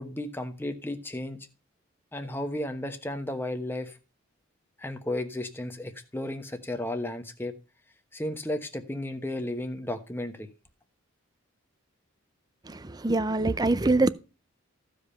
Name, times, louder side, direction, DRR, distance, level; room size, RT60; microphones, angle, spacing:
voice 1, 0.0-1.5 2.1-4.0 4.8-7.5 8.1-10.5, left 1 dB, 10° left, 1.1 m, -34 dB
voice 2, 12.7-14.1, right 2 dB, 20° right, 0.5 m, -24 dB
14.5 x 5.2 x 5.6 m
head